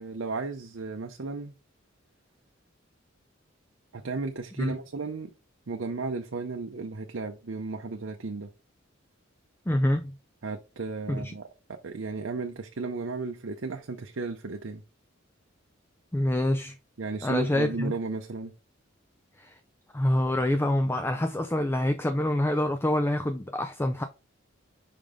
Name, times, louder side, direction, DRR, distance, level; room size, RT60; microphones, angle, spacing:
voice 1, 0.0-1.5 3.9-5.3 5.7-8.5 10.4-14.8 17.0-18.5, right 3 dB, 70° right, 0.7 m, -34 dB
voice 2, 9.7-10.1 11.1-11.3 16.1-16.8 17.2-17.9 19.4-19.6 19.9-24.0, left 1 dB, 10° left, 0.4 m, -26 dB
5.2 x 5.1 x 3.7 m
head